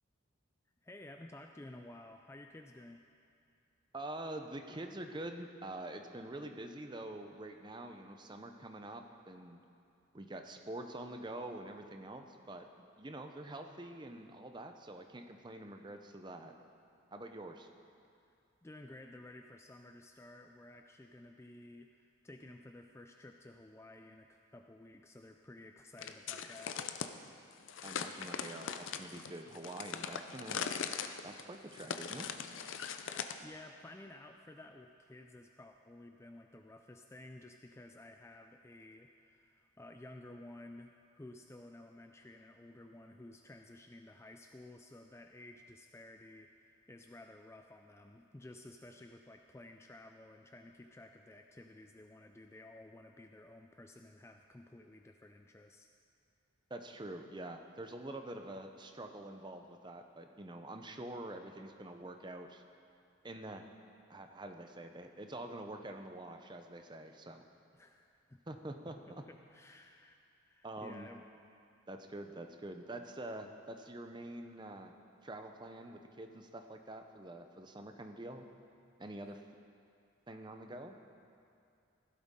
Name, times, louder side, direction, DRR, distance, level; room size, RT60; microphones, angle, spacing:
voice 1, 0.8-3.0 18.1-18.3 18.6-26.8 33.0-55.9 67.7-68.4 68.9-71.2 79.2-79.4, left 1 dB, 15° left, 4 dB, 0.3 m, -54 dB
voice 2, 3.9-9.6 10.1-12.7 13.0-16.5 17.1-17.7 27.8-30.7 31.2-32.3 56.7-62.6 63.2-63.7 64.1-67.4 68.5-69.2 70.6-71.1 71.9-74.9 75.2-78.4 79.0-79.4 80.3-80.9, right 1 dB, 20° right, 5 dB, 0.6 m, -46 dB
sound 1, 26.0-27.1 27.7-33.4, left 7 dB, 70° left, 0.5 m, -41 dB
15.5 x 12.0 x 3.7 m, 2.5 s
head